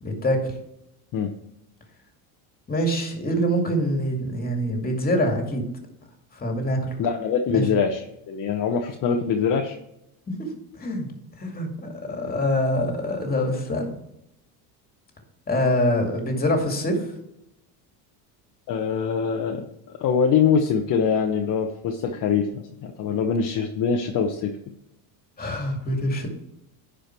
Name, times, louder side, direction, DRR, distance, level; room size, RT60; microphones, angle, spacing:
voice 1, 0.0-0.6 2.7-5.6 6.3-6.9 7.5-7.7 10.3-10.4 10.7-11.1 11.4-13.9 15.5-17.1 25.4-26.3, equal, 20° left, 3 dB, 2.3 m, -25 dB
voice 2, 7.0-9.8 18.7-24.5, left 6 dB, 45° left, 3 dB, 1.0 m, -24 dB
10.0 x 5.1 x 4.5 m, 0.82 s
supercardioid pair, 110°, 47 cm